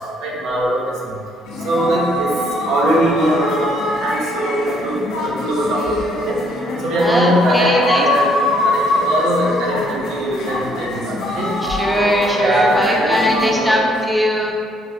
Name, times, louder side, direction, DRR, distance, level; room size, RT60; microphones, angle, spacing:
voice 1, 0.2-0.8 1.6-2.3 2.7-5.9 6.3-6.4 6.8-8.3 8.6-11.5 12.4-13.9, right 1 dB, 70° right, -4 dB, 0.6 m, -20 dB
sound 1, 1.4-13.7, left 2 dB, 80° left, 0.5 m, -23 dB
voice 2, 7.0-8.1 11.7-14.5, equal, ahead, -2 dB, 0.4 m, -19 dB
3.8 x 2.1 x 2.6 m, 2.3 s
cardioid pair, 115°, 0 cm